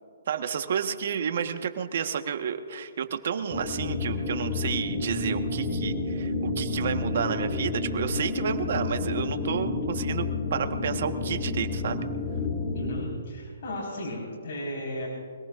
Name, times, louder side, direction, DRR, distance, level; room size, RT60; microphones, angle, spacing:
voice 1, 0.3-12.1, right 7 dB, 55° right, 7 dB, 1.3 m, -31 dB
sound 1, 3.5-13.1, left 3 dB, 20° left, 2.1 m, -30 dB
voice 2, 12.7-15.1, left 1 dB, 55° left, -4 dB, 4.5 m, -35 dB
25.5 x 18.5 x 2.5 m, 2.3 s
hypercardioid pair, 155°, 0 cm